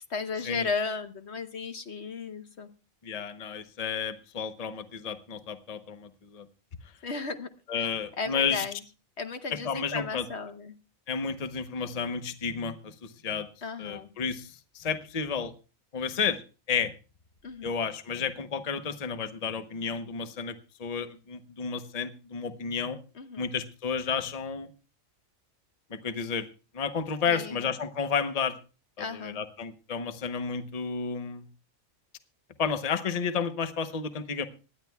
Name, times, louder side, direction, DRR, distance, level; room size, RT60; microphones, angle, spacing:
voice 1, 0.0-2.7 7.0-7.5 7.7-7.9 8.2-8.8 9.2-10.7 13.6-14.1 17.4-17.8 23.1-23.5 27.2-27.7 29.0-29.4, left 4 dB, 55° left, 8 dB, 1.1 m, -35 dB
voice 2, 3.0-6.5 7.7-8.6 9.6-10.3 11.1-13.5 13.8-15.5 15.9-16.4 16.7-16.9 17.6-20.5 20.8-23.0 23.4-24.7 25.9-26.5 26.7-28.6 29.0-31.5 32.6-34.5, left 6 dB, 30° left, 9 dB, 0.9 m, -31 dB
26.0 x 10.5 x 2.3 m, 0.33 s
omnidirectional pair, 1.4 m